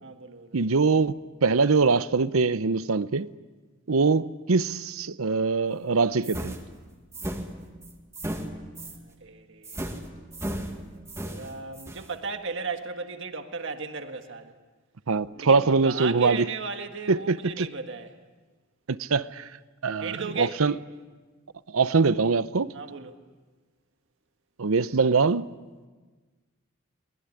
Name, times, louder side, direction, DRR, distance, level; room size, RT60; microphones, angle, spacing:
voice 1, 0.0-0.6 3.9-4.2 8.8-9.8 11.2-14.5 15.3-18.1 20.0-20.6 22.7-23.2, right 4 dB, 60° right, 1.8 m, -36 dB
voice 2, 0.5-3.3 3.9-6.5 15.1-16.5 17.1-17.7 18.9-19.5 19.8-20.7 21.7-22.7 24.6-25.5, right 4 dB, 80° right, 0.7 m, -23 dB
sound 1, 6.2-9.0 9.6-12.1, right 1 dB, 15° right, 1.8 m, -36 dB
23.0 x 20.5 x 9.9 m
head